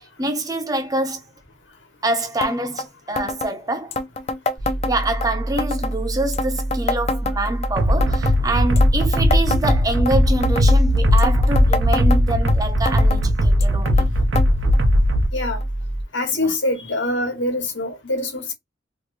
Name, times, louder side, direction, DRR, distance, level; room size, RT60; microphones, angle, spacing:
voice 1, 0.2-1.2 2.0-4.0 4.9-14.1 16.3-16.5, right 2 dB, 20° right, 0.6 m, -25 dB
sound 1, 2.4-2.5 2.8-2.9 3.2-3.5 3.9-5.3 5.6-6.0 6.3-7.7 8.0-8.4 8.8-10.1 10.4-10.8 11.2-12.5 12.9-13.2 13.6-14.1 14.4-14.5 14.7-14.8 15.6-15.7 16.5-16.6, left 3 dB, 35° left, 0.4 m, -26 dB
sound 2, 4.6-16.0, right 1 dB, 65° left, 1.2 m, -27 dB
sound 3, 7.8-15.3, equal, 90° right, 0.7 m, -18 dB
voice 2, 15.3-15.6 16.1-18.5, left 2 dB, 80° left, 1.2 m, -24 dB
2.9 x 2.5 x 3.2 m
head